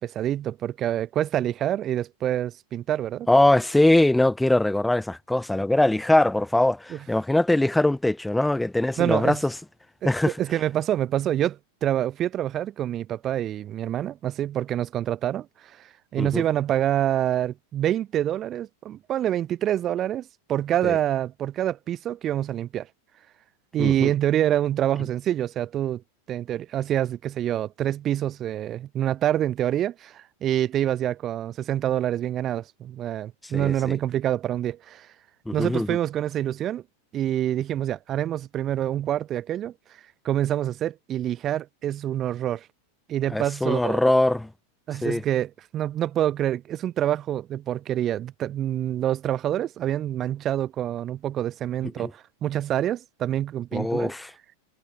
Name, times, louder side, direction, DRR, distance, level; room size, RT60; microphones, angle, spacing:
voice 1, 0.0-3.3 6.9-7.0 9.0-9.4 10.0-10.1 10.4-22.9 23.7-26.0 26.3-35.1 35.5-36.8 37.1-39.7 40.2-42.7 43.1-44.0 44.9-54.1, right 11 dB, 30° right, 0.4 m, -26 dB
voice 2, 3.3-9.5 10.0-10.3 16.2-16.4 20.8-21.0 23.8-24.1 33.5-34.0 35.5-36.0 43.3-44.5 45.0-45.2 52.0-52.1 53.7-54.3, left 1 dB, 5° left, 0.8 m, -22 dB
figure-of-eight pair, 90°, 0 cm